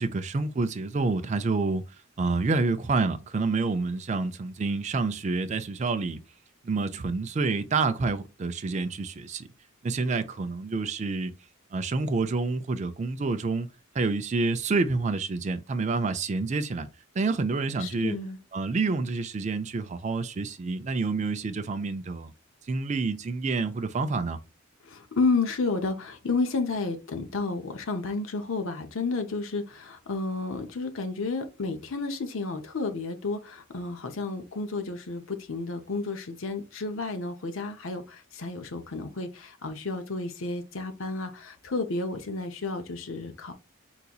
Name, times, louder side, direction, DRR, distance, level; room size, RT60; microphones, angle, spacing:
voice 1, 0.0-1.8 2.2-6.2 6.6-9.5 9.8-11.3 11.7-13.7 14.0-16.9 17.2-18.1 18.5-22.3 22.7-24.4, right 3 dB, 35° right, 0.4 m, -28 dB
voice 2, 17.8-18.4 24.8-43.5, left 3 dB, 65° left, 0.7 m, -31 dB
3.8 x 2.9 x 2.3 m
head